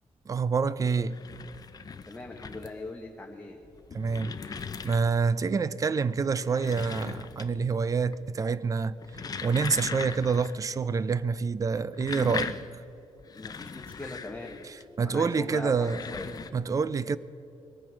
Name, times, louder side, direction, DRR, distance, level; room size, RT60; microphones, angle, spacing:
voice 1, 0.3-1.2 3.9-9.0 9.4-12.6 15.0-16.0 16.5-17.2, right 5 dB, 30° right, 0.4 m, -27 dB
sound 1, 0.9-2.9 3.6-5.3 6.3-7.7 8.0-8.5 8.9-10.6 10.9-11.0 11.7-14.8 15.6-16.5, left 5 dB, 35° left, 0.6 m, -39 dB
voice 2, 2.1-3.6 13.3-14.6 15.0-15.7 16.1-16.4, left 2 dB, 15° left, 1.2 m, -40 dB
22.0 x 9.0 x 6.2 m
wide cardioid pair, 145°, 12 cm